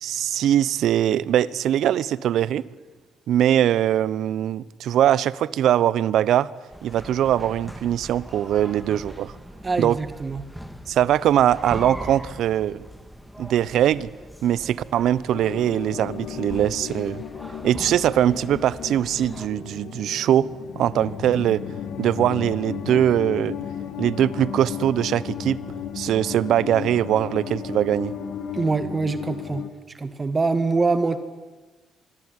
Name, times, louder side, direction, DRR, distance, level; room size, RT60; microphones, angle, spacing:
voice 1, 0.0-2.7 3.3-6.5 6.8-9.3 9.8-10.0 10.9-12.8 13.4-14.1 14.4-17.2 17.6-20.5 20.7-21.6 22.0-23.6 24.0-25.6 25.9-28.1, right 11 dB, 75° right, 0.9 m, -21 dB
sound 1, 6.7-19.5, equal, ahead, 2.4 m, -41 dB
voice 2, 9.6-10.4 28.5-29.6 30.0-31.2, right 3 dB, 30° right, 1.8 m, -24 dB
sound 2, 15.3-29.7, left 9 dB, 75° left, 2.1 m, -34 dB
Wind instrument woodwind instrument, 24.2-29.4, left 6 dB, 50° left, 2.2 m, -44 dB
25.5 x 21.5 x 9.8 m
cardioid pair, 90°, 0 cm